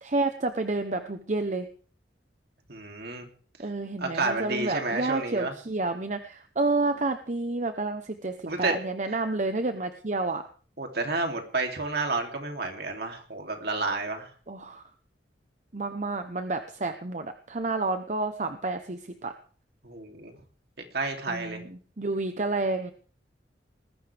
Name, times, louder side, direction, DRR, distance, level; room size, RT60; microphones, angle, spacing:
voice 1, 0.0-1.7 3.6-10.5 14.5-14.8 15.7-19.3 21.3-22.9, right 3 dB, 45° right, 8 dB, 0.9 m, -30 dB
voice 2, 2.7-3.3 4.0-5.5 8.4-8.7 10.8-14.3 19.8-20.4 20.9-21.6, right 3 dB, 65° right, 3 dB, 3.0 m, -30 dB
20.0 x 15.5 x 3.5 m, 0.43 s
head